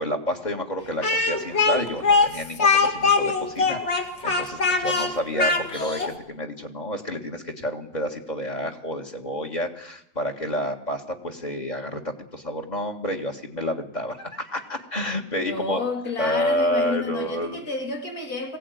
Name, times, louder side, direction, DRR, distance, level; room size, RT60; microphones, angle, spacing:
voice 1, 0.0-15.8 16.2-17.7, equal, 30° left, 1.9 m, -29 dB
Speech, 1.0-6.1, left 4 dB, 45° left, 2.4 m, -21 dB
voice 2, 15.3-18.6, left 3 dB, 75° left, 3.2 m, -30 dB
21.0 x 16.5 x 9.3 m
omnidirectional pair, 1.6 m